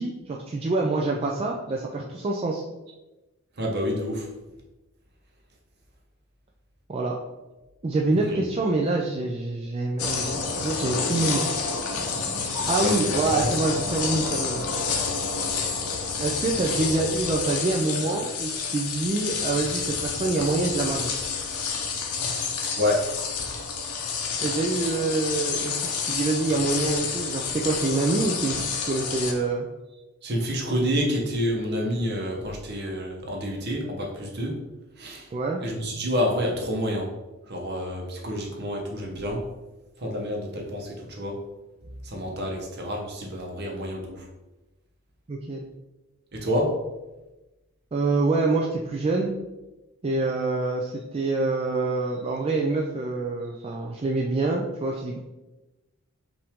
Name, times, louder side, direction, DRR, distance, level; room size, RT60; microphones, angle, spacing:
voice 1, 0.0-2.6 6.9-7.2 7.8-11.6 12.7-14.7 16.2-21.1 24.4-29.7 35.3-35.6 45.3-45.6 47.9-49.3 50.0-55.2, right 3 dB, 25° right, -1 dB, 0.3 m, -26 dB
voice 2, 3.6-4.2 12.8-13.0 13.3-13.5 22.8-23.0 30.2-34.5 35.0-35.2 35.6-37.1 37.5-39.4 40.0-41.3 42.1-44.2 46.3-46.7, equal, 50° right, 1 dB, 0.9 m, -28 dB
sound 1, 10.0-29.3, left 5 dB, 80° left, 0.7 m, -29 dB
5.5 x 2.6 x 3.5 m, 1.1 s
head